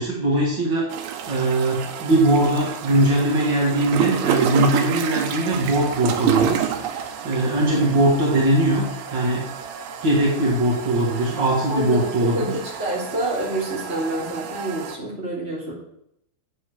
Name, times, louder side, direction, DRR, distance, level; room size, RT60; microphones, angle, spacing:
voice 1, 0.0-8.8 9.1-9.4 10.0-12.6, right 1 dB, 70° right, -4 dB, 1.0 m, -21 dB
sound 1, 0.9-15.0, right 9 dB, 85° right, 3.3 m, -29 dB
voice 2, 7.7-8.0 11.7-15.7, right 1 dB, 15° right, -5 dB, 2.7 m, -28 dB
9.4 x 8.3 x 4.8 m, 0.78 s
omnidirectional pair, 5.2 m